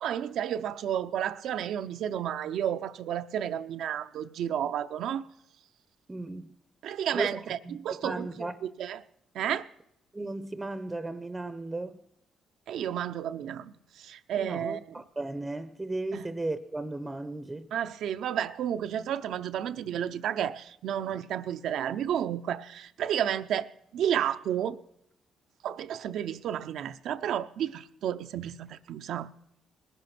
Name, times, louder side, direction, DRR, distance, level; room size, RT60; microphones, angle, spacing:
voice 1, 0.0-5.2 6.8-9.0 9.3-9.7 12.7-14.8 16.1-16.2 17.7-24.8 25.6-29.3, right 9 dB, 75° right, 0.6 m, -32 dB
voice 2, 6.1-6.5 7.1-7.8 8.0-8.5 10.1-12.0 14.4-17.7, right 2 dB, 15° right, 0.7 m, -35 dB
19.5 x 11.0 x 5.9 m
cardioid pair, 90°, 0 cm